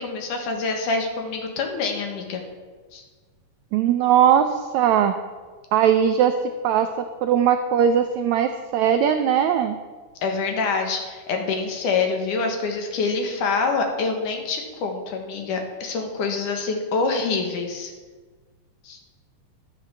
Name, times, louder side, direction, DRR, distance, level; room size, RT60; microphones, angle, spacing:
voice 1, 0.0-2.4 2.9-3.0 10.2-17.9 18.8-19.0, left 4 dB, 65° left, 3 dB, 2.9 m, -26 dB
voice 2, 3.7-5.1 5.7-6.3 6.6-9.7, right 9 dB, 90° right, 8 dB, 1.6 m, -19 dB
12.0 x 8.1 x 6.9 m, 1.4 s
omnidirectional pair, 4.0 m